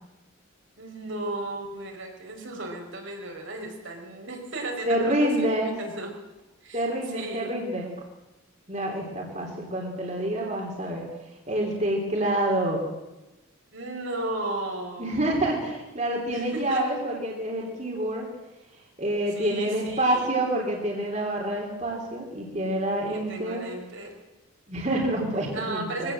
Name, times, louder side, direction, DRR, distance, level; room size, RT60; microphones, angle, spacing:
voice 1, 0.8-6.1 6.6-7.7 13.7-15.6 16.3-16.8 19.3-20.3 23.1-24.1 25.5-26.1, right 2 dB, 65° right, 1 dB, 4.8 m, -35 dB
voice 2, 4.9-5.7 6.7-7.9 8.7-11.1 11.5-12.8 15.0-18.3 19.0-23.6 24.7-26.1, right 1 dB, 35° right, 0 dB, 3.4 m, -27 dB
22.5 x 17.0 x 7.7 m, 1.0 s
head